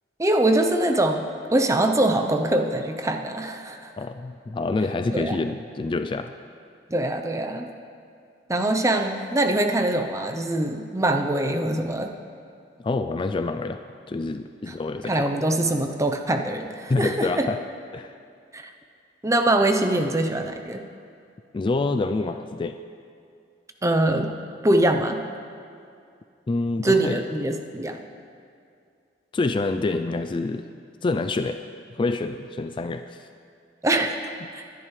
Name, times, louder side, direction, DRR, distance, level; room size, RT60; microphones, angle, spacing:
voice 1, 0.2-3.9 5.1-5.4 6.9-7.7 8.5-12.2 14.7-14.8 15.1-17.5 18.5-18.7 19.2-20.8 23.8-24.3 24.6-25.2 26.8-28.0 33.8-34.6, right 1 dB, 15° right, 6 dB, 0.7 m, -23 dB
voice 2, 4.0-6.3 12.8-13.8 14.1-15.3 16.9-17.6 17.9-18.2 21.5-22.8 26.5-27.2 29.3-30.7 31.0-31.6 32.0-33.3 34.4-34.5, left 3 dB, 25° left, 8 dB, 0.3 m, -27 dB
20.5 x 10.5 x 3.2 m, 2.4 s
head